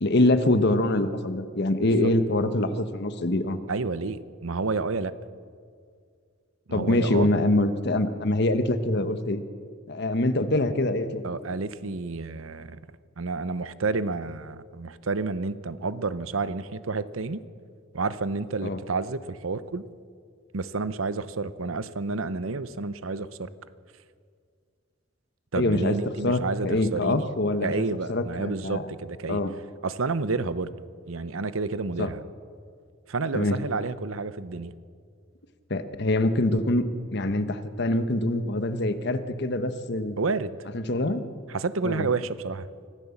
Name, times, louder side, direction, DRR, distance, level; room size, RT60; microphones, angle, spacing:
voice 1, 0.0-3.6 6.7-9.4 9.9-11.2 18.6-18.8 25.5-26.0 26.2-27.8 28.1-28.9 29.3-29.5 32.0-32.1 33.3-33.6 35.7-36.8 37.1-40.2 40.7-41.2 41.8-42.1, left 1 dB, 55° left, 10 dB, 1.2 m, -24 dB
voice 2, 1.8-2.1 3.7-5.1 6.7-7.3 11.2-12.8 13.2-17.4 17.9-19.8 20.5-23.5 25.5-27.3 27.6-29.4 29.8-30.7 31.1-32.2 33.1-34.7 40.2-40.6 41.5-42.7, right 3 dB, 90° right, 14 dB, 0.8 m, -30 dB
24.5 x 15.0 x 7.2 m, 2.1 s
head